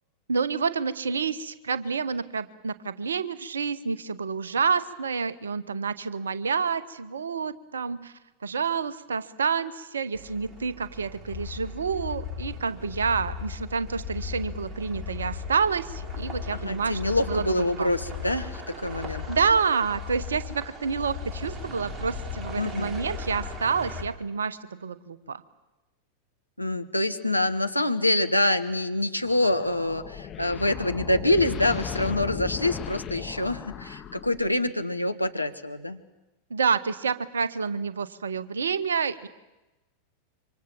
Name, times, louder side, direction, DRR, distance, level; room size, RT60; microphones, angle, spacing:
voice 1, 0.3-8.1 8.4-17.0 17.3-17.9 19.3-25.4 36.5-39.3, right 5 dB, 70° right, 15 dB, 1.1 m, -28 dB
sound 1, 10.1-24.0, right 1 dB, 20° right, 3.5 m, -42 dB
sound 2, 11.3-24.1, left 11 dB, 45° left, 2.2 m, -38 dB
voice 2, 16.5-19.2 22.6-22.9 26.6-36.0, left 1 dB, 85° left, 8 dB, 1.4 m, -26 dB
sound 3, 29.2-34.7, left 8 dB, 30° left, 1.6 m, -37 dB
26.5 x 25.0 x 7.3 m, 1.0 s
figure-of-eight pair, 90°, 0 cm